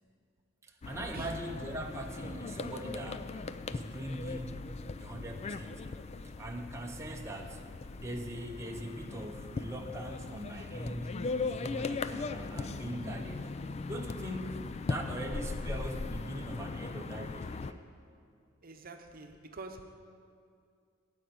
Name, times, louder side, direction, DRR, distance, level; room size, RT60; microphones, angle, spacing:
voice 1, 0.6-3.3 3.7-4.6 5.0-6.0 6.4-7.6 8.0-13.5 13.9-17.8, right 1 dB, 15° right, 1 dB, 0.7 m, -41 dB
sound 1, 0.8-17.7, left 3 dB, 30° left, 0.4 m, -39 dB
voice 2, 18.6-20.0, right 3 dB, 45° right, 5 dB, 0.9 m, -45 dB
15.5 x 5.3 x 9.4 m, 2.3 s
head